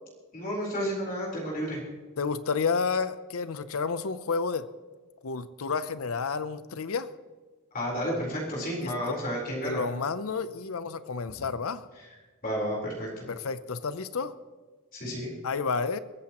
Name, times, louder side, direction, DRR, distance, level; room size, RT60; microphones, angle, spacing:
voice 1, 0.3-1.8 7.7-9.8 12.0-12.1 12.4-13.3 14.9-15.3, equal, 40° left, -3 dB, 4.0 m, -31 dB
voice 2, 2.2-4.7 5.2-7.1 8.8-8.9 9.6-11.9 13.3-14.3 15.4-16.0, left 5 dB, 70° left, 14 dB, 0.6 m, -30 dB
22.0 x 14.5 x 3.0 m, 1.4 s
head